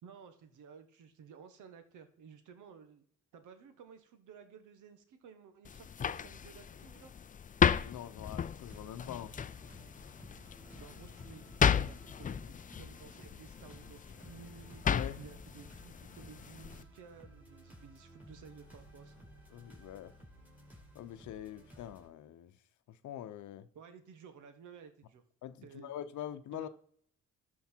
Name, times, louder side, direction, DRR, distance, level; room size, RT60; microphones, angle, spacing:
voice 1, 0.0-3.0 3.3-7.1 10.7-14.8 15.2-19.1 23.7-25.2 25.6-25.9 26.5-26.7, right 6 dB, 80° right, 1.5 m, -55 dB
sound 1, 5.6-16.8, left 7 dB, 25° left, 0.4 m, -35 dB
voice 2, 7.8-9.3 14.8-15.2 19.5-20.1 20.9-22.6 22.9-23.7 25.4-26.7, left 11 dB, 75° left, 0.8 m, -44 dB
sound 2, 8.6-22.1, equal, 5° right, 4.5 m, -56 dB
13.0 x 4.6 x 4.5 m
cardioid pair, 90°, 30 cm